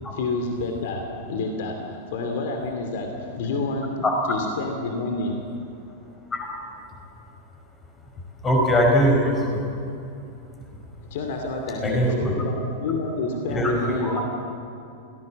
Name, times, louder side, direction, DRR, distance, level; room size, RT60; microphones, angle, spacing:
voice 1, 0.1-5.5 11.1-14.2, left 3 dB, 55° left, 4 dB, 2.6 m, -29 dB
voice 2, 8.4-9.6 11.8-12.4 13.5-14.1, equal, 20° left, 1 dB, 5.5 m, -21 dB
27.5 x 18.5 x 7.6 m, 2.6 s
figure-of-eight pair, 90°, 0 cm